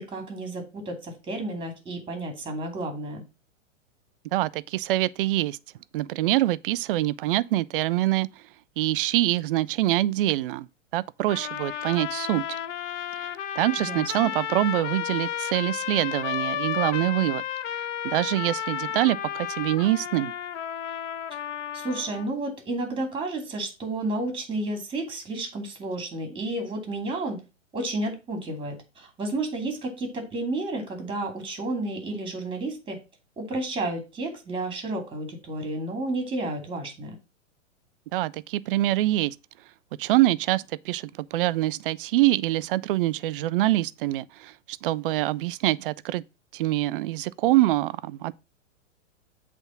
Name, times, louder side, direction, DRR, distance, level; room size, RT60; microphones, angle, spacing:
voice 1, 0.0-3.2 13.8-14.3 21.7-27.4 27.7-33.0 33.4-37.2, right 2 dB, 15° right, 2.6 m, -31 dB
voice 2, 4.3-5.6 5.9-8.3 8.8-10.7 10.9-12.4 13.2-13.3 13.6-17.4 18.0-20.3 38.1-39.3 40.0-46.2 46.5-48.3, right 16 dB, 45° right, 0.5 m, -25 dB
sound 1, 11.3-22.3, left 9 dB, 70° left, 0.7 m, -32 dB
8.0 x 3.5 x 5.8 m
hypercardioid pair, 115°, 38 cm